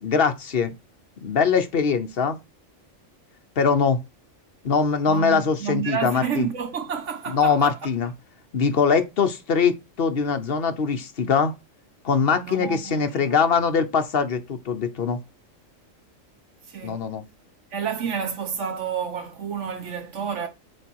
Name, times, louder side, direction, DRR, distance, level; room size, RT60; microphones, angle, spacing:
voice 1, 0.0-0.7 1.2-2.4 3.6-4.0 4.6-6.5 7.3-8.1 8.5-11.5 12.0-15.2 16.8-17.2, left 6 dB, 50° left, 1.0 m, -22 dB
voice 2, 5.1-7.8 12.3-13.4 16.7-17.0 17.7-20.5, right 7 dB, 65° right, 1.4 m, -30 dB
7.7 x 2.9 x 4.5 m
omnidirectional pair, 1.4 m